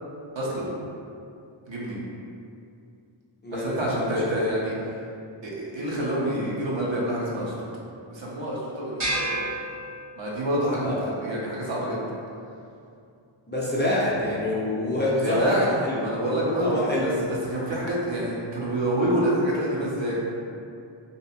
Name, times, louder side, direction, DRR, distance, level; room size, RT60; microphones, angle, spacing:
voice 1, 0.3-0.7 1.7-2.0 3.5-4.7 5.4-7.5 8.1-9.5 10.2-12.0 15.2-15.7 16.0-17.1 17.4-20.1, right 1 dB, 65° right, -5 dB, 0.7 m, -27 dB
voice 2, 3.4-4.3 10.8-11.0 13.5-16.1 16.5-17.1, left 1 dB, 25° left, -7 dB, 0.4 m, -27 dB
sound 1, 9.0-10.5, right 1 dB, 90° right, 1.1 m, -30 dB
2.7 x 2.4 x 2.6 m, 2.5 s
wide cardioid pair, 85°, 48 cm